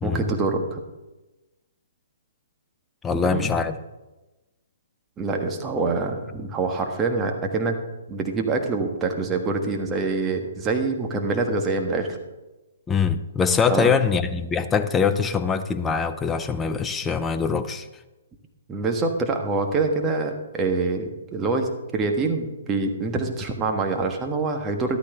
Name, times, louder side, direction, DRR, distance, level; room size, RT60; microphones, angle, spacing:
voice 1, 0.0-0.8 3.1-3.5 5.2-7.8 8.1-12.2 13.7-14.0 18.7-25.0, right 3 dB, 15° right, 3 dB, 1.4 m, -25 dB
voice 2, 3.0-3.7 12.9-17.9, left 6 dB, 10° left, 10 dB, 0.6 m, -23 dB
13.5 x 12.0 x 3.5 m, 1.1 s
figure-of-eight pair, 125°, 0 cm